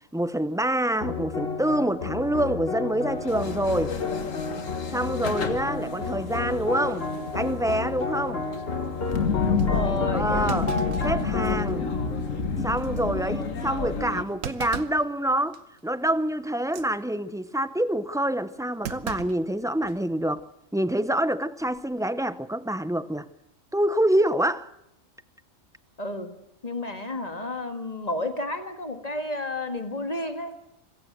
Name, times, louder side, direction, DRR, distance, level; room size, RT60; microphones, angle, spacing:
voice 1, 0.1-4.0 4.9-7.1 7.3-8.4 9.7-10.7 11.0-11.9 12.6-15.6 15.8-20.5 20.7-23.3 23.7-24.7, right 1 dB, 5° right, 0.4 m, -26 dB
sound 1, 1.0-13.5, left 4 dB, 50° left, 1.8 m, -32 dB
sound 2, 3.1-14.2, left 4 dB, 70° left, 2.1 m, -30 dB
voice 2, 9.4-10.3 13.0-13.5 26.0-26.3 26.6-30.6, left 2 dB, 30° left, 2.0 m, -32 dB
Thump thud, 9.6-9.7 10.5-11.8 12.2-12.3 12.8-13.0 14.4-15.1 15.5-15.8 16.6-16.9 18.8-20.0 20.4-20.5 21.6-21.9, right 8 dB, 75° right, 1.4 m, -37 dB
25.5 x 15.5 x 7.7 m
omnidirectional pair, 1.4 m